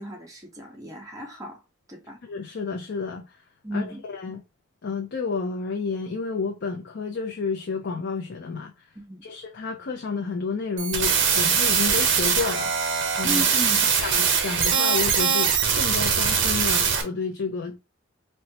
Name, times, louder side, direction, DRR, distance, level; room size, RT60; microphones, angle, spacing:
voice 1, 0.0-1.6 1.9-2.2 3.6-4.0 8.9-9.2 13.2-13.9, equal, 15° right, 1.0 m, -35 dB
voice 2, 2.2-3.4 3.7-4.4 4.8-8.7 9.2-13.5 14.0-17.8, left 4 dB, 60° left, 0.5 m, -31 dB
sound 1, 10.8-17.0, right 6 dB, 65° right, 0.8 m, -22 dB
4.2 x 2.1 x 2.8 m
head